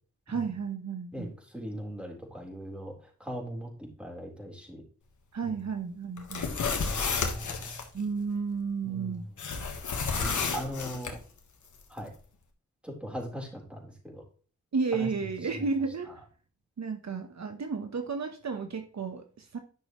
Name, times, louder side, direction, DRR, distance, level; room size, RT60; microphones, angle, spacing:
voice 1, 0.3-1.3 5.3-6.5 7.9-9.2 14.7-16.2 16.8-19.6, right 5 dB, 65° right, 6 dB, 1.1 m, -32 dB
voice 2, 1.5-2.9 3.2-4.8 5.5-5.6 6.4-7.8 8.8-9.1 10.2-11.2 11.9-12.1 12.8-14.2 15.0-15.1, equal, 5° right, 0 dB, 4.0 m, -39 dB
sound 1, 6.2-7.8 9.4-11.1, left 5 dB, 85° left, 1.5 m, -31 dB
11.0 x 6.2 x 3.1 m, 0.40 s
cardioid pair, 45°, 29 cm